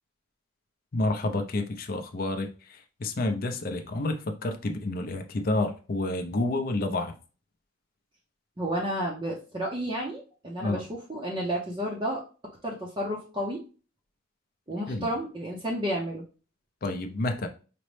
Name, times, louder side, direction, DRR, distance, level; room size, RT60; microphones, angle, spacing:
voice 1, 0.9-2.5 3.0-7.2 10.6-10.8 14.9-15.1 16.8-17.5, left 2 dB, 45° left, 0.5 m, -29 dB
voice 2, 8.6-12.2 12.6-13.6 14.7-16.2, equal, 20° right, 0.5 m, -31 dB
5.1 x 2.1 x 3.1 m
head